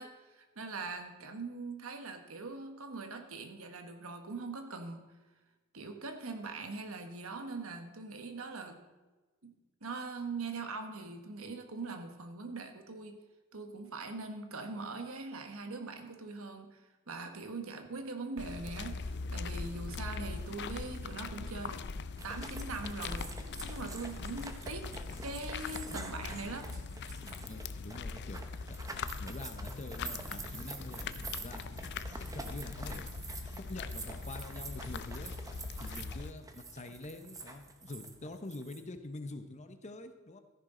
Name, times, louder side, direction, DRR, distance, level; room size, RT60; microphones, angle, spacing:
voice 1, 0.0-5.0 5.7-8.8 9.4-9.5 9.8-13.2 13.5-16.8 17.1-21.9 22.2-24.9 25.2-26.7, right 3 dB, 70° right, 6 dB, 1.4 m, -42 dB
sound 1, 18.4-36.3, left 4 dB, 55° left, 0.5 m, -41 dB
Crazy Run, 22.2-38.8, right 3 dB, 15° right, 1.0 m, -47 dB
voice 2, 27.5-28.4 28.7-31.7 32.3-33.1 33.7-35.3 35.8-40.4, left 2 dB, 35° left, 8 dB, 0.9 m, -46 dB
14.0 x 10.5 x 3.9 m, 1.2 s
head